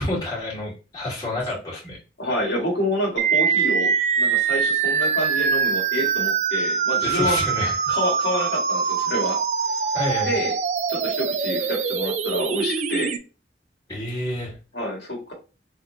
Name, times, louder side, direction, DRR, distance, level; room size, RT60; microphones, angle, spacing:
voice 1, 0.0-2.0 7.0-7.9 9.9-10.3 13.9-14.6, left 1 dB, 20° left, -7 dB, 1.9 m, -28 dB
voice 2, 2.2-7.4 7.9-9.4 10.2-10.5 10.9-13.2 14.7-15.3, equal, 75° left, -1 dB, 1.6 m, -27 dB
sound 1, 3.2-13.2, right 6 dB, 40° right, 0.3 m, -23 dB
4.0 x 3.0 x 2.6 m, 0.32 s
head